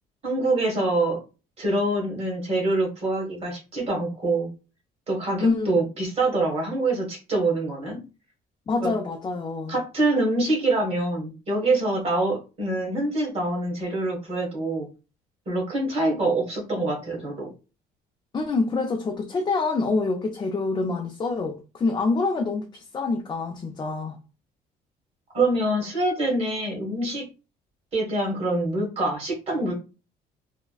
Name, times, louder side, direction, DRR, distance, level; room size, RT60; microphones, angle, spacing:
voice 1, 0.2-1.2 1.6-4.5 5.1-8.0 8.8-8.9 9.7-14.9 15.5-17.5 25.3-27.3 27.9-29.7, right 2 dB, 35° right, 1.5 m, -25 dB
voice 2, 5.4-5.7 8.7-9.7 18.3-24.2, left 3 dB, 25° left, 0.4 m, -26 dB
3.4 x 2.1 x 2.3 m
cardioid pair, 110°, 17 cm